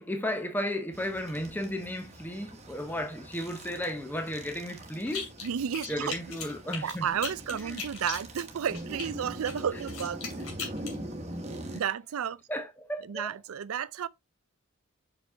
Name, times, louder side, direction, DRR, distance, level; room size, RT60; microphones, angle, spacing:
voice 1, 0.0-5.3 5.9-7.1 7.6-7.8 11.2-11.7 12.5-13.3, equal, 10° left, 0.7 m, -34 dB
sound 1, 0.9-11.8, right 1 dB, 30° right, 1.2 m, -43 dB
sound 2, 5.0-5.5 5.7-9.1 9.4-10.9, left 5 dB, 90° left, 2.5 m, -38 dB
voice 2, 5.4-6.4 6.8-10.3 10.6-10.7 11.7-12.4 13.1-14.1, right 8 dB, 85° right, 0.4 m, -32 dB
5.9 x 5.2 x 3.4 m
head